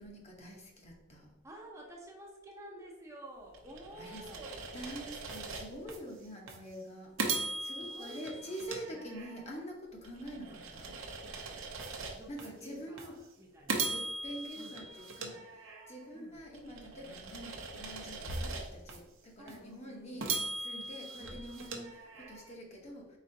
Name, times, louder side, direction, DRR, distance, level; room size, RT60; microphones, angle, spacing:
voice 1, 0.0-1.3 4.0-4.2 4.7-10.4 10.7-11.0 12.3-13.2 13.9-20.3 20.6-23.2, equal, 35° left, 0 dB, 0.9 m, -45 dB
voice 2, 1.4-4.7 7.8-9.1 10.3-10.6 12.1-13.9 14.6-14.8 16.1-16.4 19.4-20.2 21.2-21.4, right 1 dB, 15° right, -1 dB, 0.6 m, -51 dB
sound 1, 3.5-6.0 6.5-6.6 7.2-9.6 10.0-12.5 13.0-13.1 13.7-16.1 16.5-19.0 19.5-19.6 20.2-22.5, right 3 dB, 85° right, 0.7 m, -40 dB
4.2 x 4.0 x 2.6 m, 0.97 s
head